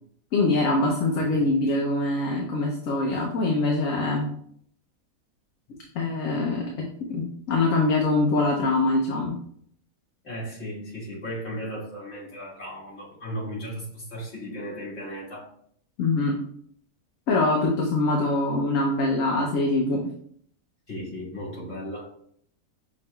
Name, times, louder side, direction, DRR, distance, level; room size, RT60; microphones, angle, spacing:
voice 1, 0.3-4.3 5.9-9.4 16.0-16.4 17.3-20.0, left 2 dB, 70° left, 0 dB, 1.1 m, -24 dB
voice 2, 10.2-15.5 20.9-22.1, equal, 50° left, -6 dB, 1.8 m, -36 dB
5.7 x 3.7 x 2.2 m, 0.65 s
omnidirectional pair, 1.5 m